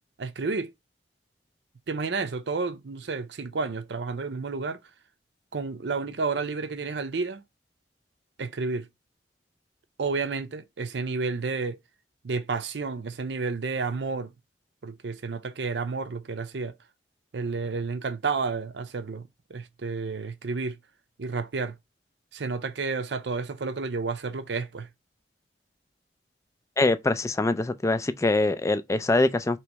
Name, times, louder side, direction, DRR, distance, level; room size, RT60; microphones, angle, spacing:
voice 1, 0.2-0.7 1.9-4.8 5.5-7.4 8.4-8.9 10.0-11.8 12.2-14.3 14.8-16.7 17.3-20.8 21.2-21.7 22.3-24.9, right 4 dB, 75° right, 0.6 m, -31 dB
voice 2, 26.8-29.6, left 2 dB, 15° left, 0.3 m, -24 dB
3.1 x 3.0 x 4.5 m
head